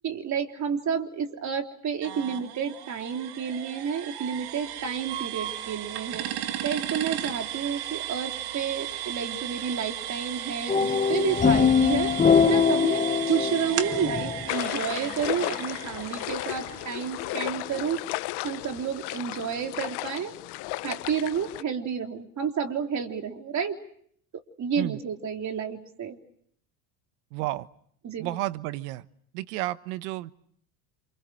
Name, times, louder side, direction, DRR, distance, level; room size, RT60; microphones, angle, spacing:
voice 1, 0.0-6.3 6.6-12.1 12.5-18.0 18.4-20.4 20.8-23.8 24.6-26.2 28.0-28.4, right 7 dB, 40° right, 4 dB, 3.7 m, -30 dB
sound 1, 2.0-17.7, right 12 dB, 55° right, 2.4 m, -36 dB
sound 2, 10.7-15.0, left 6 dB, 15° left, 1.2 m, -23 dB
sound 3, 14.5-21.6, left 20 dB, 60° left, 1.0 m, -34 dB
voice 2, 27.3-27.7 28.2-29.0 29.3-30.3, right 17 dB, 75° right, 15 dB, 1.2 m, -31 dB
28.5 x 27.5 x 6.3 m, 0.66 s
supercardioid pair, 105°, 45 cm